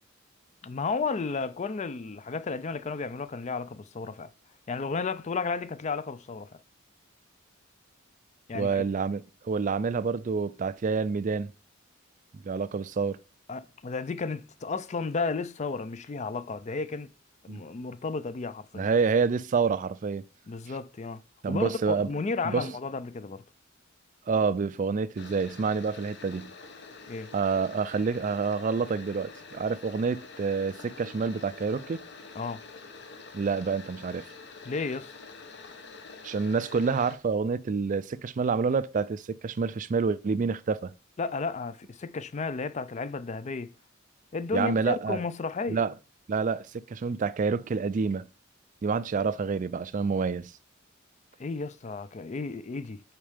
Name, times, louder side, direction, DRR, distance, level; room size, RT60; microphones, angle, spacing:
voice 1, 0.6-4.3 4.7-6.5 8.5-8.8 13.5-17.1 17.4-18.9 20.5-21.2 21.5-23.4 27.1-27.3 32.3-32.6 34.6-35.1 41.2-43.7 44.3-45.8 51.4-53.0, left 4 dB, 35° left, 0.4 m, -33 dB
voice 2, 8.5-11.5 12.4-13.2 17.5-17.6 18.7-20.2 21.4-22.1 22.4-22.7 24.3-26.5 27.3-32.0 33.3-34.3 36.2-40.9 44.5-45.2 45.7-45.9 46.3-48.3 48.8-50.5, right 5 dB, 40° right, 0.4 m, -28 dB
sound 1, 25.1-37.2, left 4 dB, 55° left, 1.1 m, -47 dB
8.7 x 4.5 x 5.1 m
head